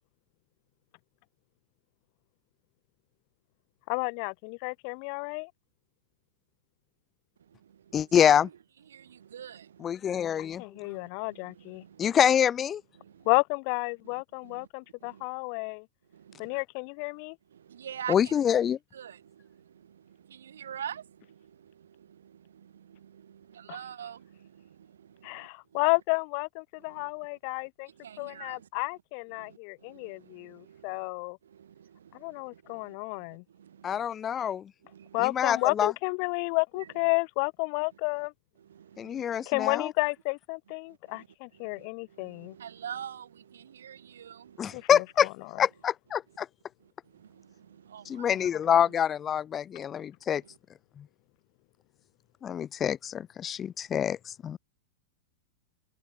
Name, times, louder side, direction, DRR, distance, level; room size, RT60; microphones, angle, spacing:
voice 1, 3.9-5.5 10.6-11.8 13.2-15.8 16.4-17.3 25.2-27.9 28.2-31.4 32.2-33.4 35.1-38.3 39.5-42.5 44.7-44.9, left 40 dB or more, 50° left, 1.4 m, -31 dB
voice 2, 7.4-8.3 8.9-10.2 10.7-12.1 13.0-13.3 14.0-14.7 15.0-15.2 16.1-16.6 17.5-18.3 18.9-25.8 26.8-27.3 27.9-28.7 29.3-31.1 31.4-34.1 34.8-35.4 36.7-36.9 38.6-39.5 40.9-41.3 41.5-44.8 47.0-48.5, right 9 dB, 80° right, 2.5 m, -46 dB
voice 3, 7.9-8.5 9.8-10.6 12.0-12.8 18.1-18.8 33.8-34.7 35.2-35.9 39.0-39.9 44.6-45.3 45.6-46.5 48.0-50.4 51.0-51.1 52.4-54.6, left 9 dB, 25° left, 0.4 m, -26 dB
hypercardioid pair, 110°, 0 cm